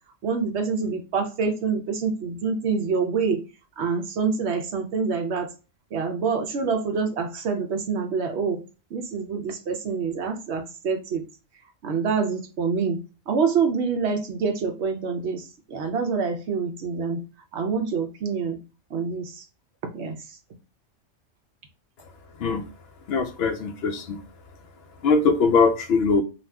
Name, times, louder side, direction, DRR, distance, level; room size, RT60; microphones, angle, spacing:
voice 1, 0.2-3.4 3.8-5.5 5.9-8.6 8.9-11.2 11.8-13.0 13.3-17.2 17.5-18.6 18.9-19.4 19.8-20.4, right 5 dB, 65° right, 5 dB, 0.9 m, -26 dB
voice 2, 22.3-22.7 23.1-24.2 25.0-26.2, left 4 dB, 65° left, 6 dB, 0.7 m, -21 dB
2.7 x 2.3 x 3.3 m, 0.33 s
omnidirectional pair, 1.3 m